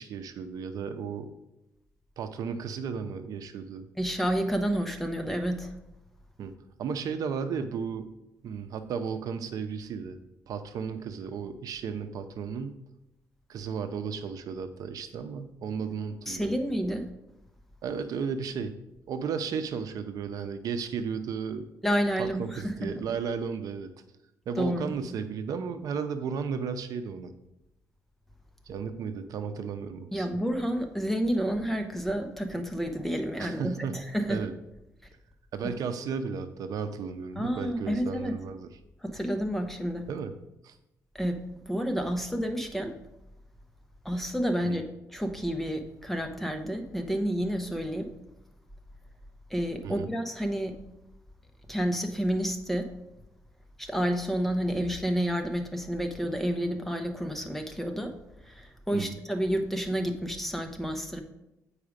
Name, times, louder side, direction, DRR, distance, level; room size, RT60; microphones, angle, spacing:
voice 1, 0.0-1.3 2.2-3.8 6.4-6.5 6.8-8.1 8.4-10.2 10.5-12.7 13.5-16.5 17.8-18.8 19.1-21.7 22.2-23.9 24.5-27.3 28.7-30.3 33.4-34.0 34.3-34.5 35.5-38.7 40.1-40.3 40.6-40.7 44.6-44.8 49.8-50.1 58.9-59.2, right 6 dB, 70° right, 9 dB, 0.6 m, -34 dB
voice 2, 4.0-5.7 16.3-17.0 21.8-23.1 24.6-24.9 30.1-34.4 37.4-38.4 39.0-40.1 41.1-43.0 44.0-44.8 45.1-48.1 49.5-50.8 51.7-52.9 53.8-58.2 58.4-61.2, equal, 5° left, 6 dB, 0.8 m, -30 dB
8.4 x 4.9 x 5.0 m, 0.89 s
cardioid pair, 130°, 6 cm